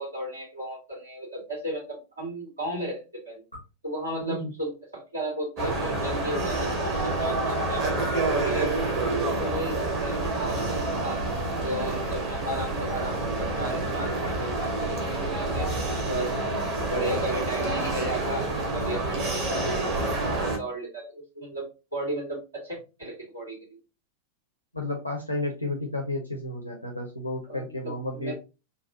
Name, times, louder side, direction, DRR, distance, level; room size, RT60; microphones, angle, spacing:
voice 1, 0.0-3.4 3.8-8.7 9.4-11.2 11.6-15.7 16.1-23.8 27.5-28.3, right 1 dB, 80° right, -5 dB, 2.0 m, -35 dB
voice 2, 4.2-4.5 24.7-28.3, left 1 dB, 85° left, 0 dB, 0.6 m, -32 dB
sound 1, 5.6-20.6, right 2 dB, 45° right, 1.2 m, -28 dB
4.0 x 2.3 x 2.6 m, 0.29 s
figure-of-eight pair, 90°, 0 cm